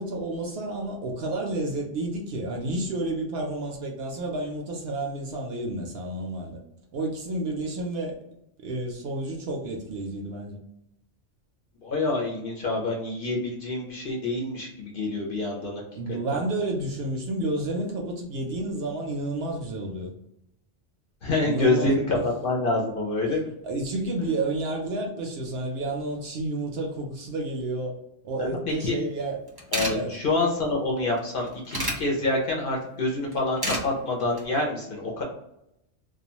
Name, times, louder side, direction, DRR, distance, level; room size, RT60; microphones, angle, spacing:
voice 1, 0.0-6.6 6.9-8.2 8.6-10.6 15.9-20.1 21.4-22.2 23.6-28.0 28.2-29.4 29.9-30.2, right 2 dB, 65° right, 1 dB, 0.7 m, -30 dB
voice 2, 11.8-15.8 21.2-23.5 28.4-29.0 29.7-35.2, left 2 dB, 55° left, -2 dB, 0.7 m, -27 dB
sound 1, 29.2-29.3 29.5-29.9 31.2-32.0 33.3-33.8 34.2-34.4, equal, 30° right, 0.4 m, -29 dB
2.3 x 2.2 x 2.8 m, 0.82 s
omnidirectional pair, 1.2 m